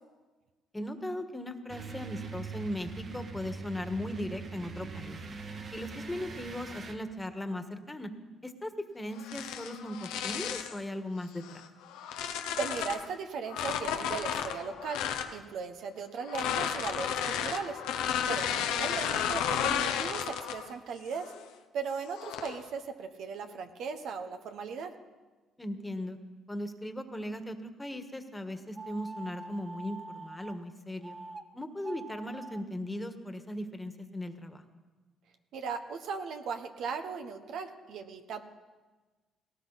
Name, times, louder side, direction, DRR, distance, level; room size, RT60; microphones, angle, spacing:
voice 1, 0.7-5.2 5.7-8.1 8.4-11.6 25.6-26.2 26.5-31.2 31.5-34.6, left 1 dB, 15° left, 7 dB, 1.6 m, -38 dB
sound 1, 1.7-6.9, right 4 dB, 55° right, 2.2 m, -42 dB
sound 2, 9.2-10.8 11.4-13.1 13.5-15.3 16.2-20.7 21.1-21.4 22.1-22.6, left 9 dB, 85° left, 1.0 m, -33 dB
voice 2, 12.6-15.0 15.3-17.8 18.3-21.3 21.7-24.9 35.5-38.4, right 5 dB, 70° right, 6 dB, 1.2 m, -37 dB
sound 3, 28.7-30.6 31.0-31.4 31.8-32.6, right 3 dB, 25° right, 1.0 m, -45 dB
18.0 x 17.5 x 4.2 m, 1.3 s
supercardioid pair, 65°, 0 cm